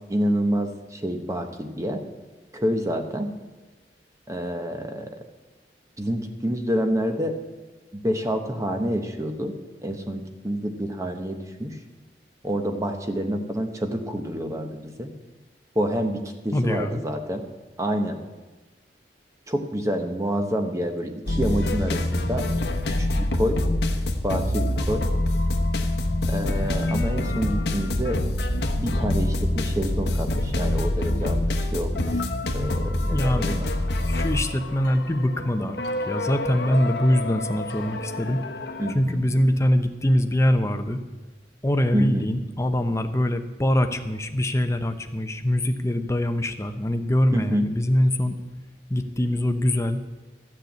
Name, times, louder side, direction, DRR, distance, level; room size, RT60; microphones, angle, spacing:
voice 1, 0.1-2.0 2.5-3.3 4.3-5.1 6.0-7.4 8.0-9.6 9.8-11.7 12.4-15.1 15.7-17.4 17.8-18.2 19.5-22.4 23.0-23.6 24.2-25.1 26.3-32.2 32.5-33.7 38.8-39.3 41.9-42.3 47.3-47.7, equal, 20° right, 5 dB, 1.0 m, -28 dB
voice 2, 16.5-17.0 33.1-33.6 34.1-35.8 36.1-38.4 38.9-41.0 41.6-48.4 48.9-50.0, left 1 dB, 15° left, 7 dB, 0.8 m, -23 dB
sound 1, 21.3-38.9, left 1 dB, 65° left, 1.1 m, -26 dB
13.5 x 6.7 x 8.4 m, 1.2 s
head